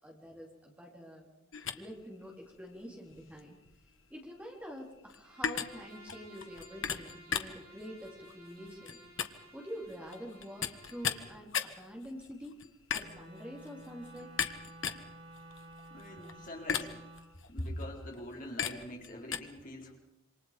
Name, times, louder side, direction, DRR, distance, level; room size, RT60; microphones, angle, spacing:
voice 1, 0.0-1.3 1.7-3.6 4.1-9.1 9.5-12.6 12.9-14.3 16.2-16.3, equal, 5° right, -1 dB, 3.8 m, -46 dB
sound 1, 1.5-19.4, left 7 dB, 65° left, 1.5 m, -39 dB
Bowed string instrument, 5.2-11.4, right 1 dB, 75° right, 7.2 m, -56 dB
Wind instrument woodwind instrument, 12.9-17.3, right 1 dB, 50° right, 7.3 m, -52 dB
voice 2, 15.9-16.9 17.5-20.0, left 1 dB, 40° left, 0 dB, 4.2 m, -42 dB
27.5 x 25.5 x 5.2 m, 0.85 s
head